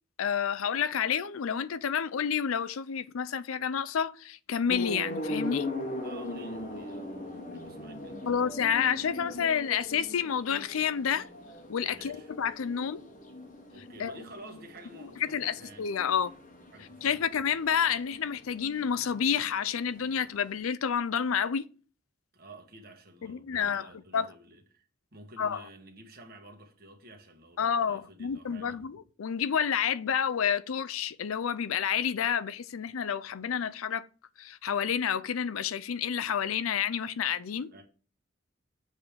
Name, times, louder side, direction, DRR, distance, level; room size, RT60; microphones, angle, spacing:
voice 1, 0.2-5.7 8.3-11.3 11.7-13.0 14.0-14.1 15.3-16.3 17.0-21.7 23.2-24.3 25.4-25.6 27.6-34.1 34.4-37.7, left 7 dB, 90° left, 0.5 m, -29 dB
sound 1, 4.7-20.6, left 1 dB, 40° left, 1.0 m, -40 dB
voice 2, 6.0-8.2 11.9-12.3 12.8-12.9 13.7-15.9 16.7-17.3 22.3-28.8 37.7-37.8, right 1 dB, 45° right, 1.4 m, -51 dB
7.2 x 3.5 x 6.2 m
head